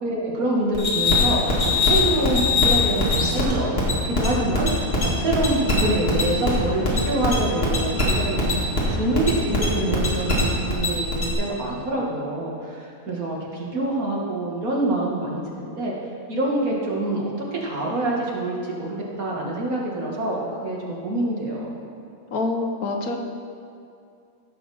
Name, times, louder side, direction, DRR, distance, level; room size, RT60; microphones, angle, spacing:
voice 1, 0.0-4.7 5.0-15.9 16.3-21.7, right 2 dB, 75° right, -3 dB, 2.3 m, -26 dB
sound 1, 0.7-11.3, left 3 dB, 40° left, 2.4 m, -22 dB
voice 2, 13.7-14.1 22.3-23.2, left 3 dB, 80° left, 3 dB, 1.5 m, -27 dB
16.0 x 7.0 x 4.2 m, 2.5 s
omnidirectional pair, 1.5 m